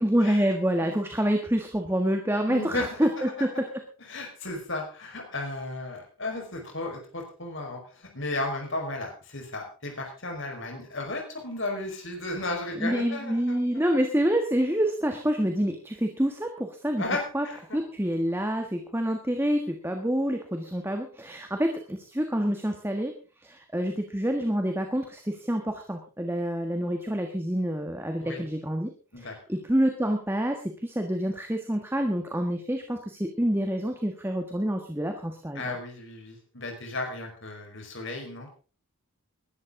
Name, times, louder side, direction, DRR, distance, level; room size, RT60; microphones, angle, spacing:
voice 1, 0.0-3.5 12.8-17.0 17.3-17.4 17.7-23.1 23.4-28.9 29.2-35.8, equal, 10° right, 4 dB, 1.5 m, -27 dB
voice 2, 2.5-3.2 4.1-13.6 17.0-17.8 28.2-28.4 29.1-29.3 35.5-38.5, left 2 dB, 55° left, 2 dB, 5.0 m, -34 dB
20.5 x 12.0 x 3.8 m, 0.36 s
head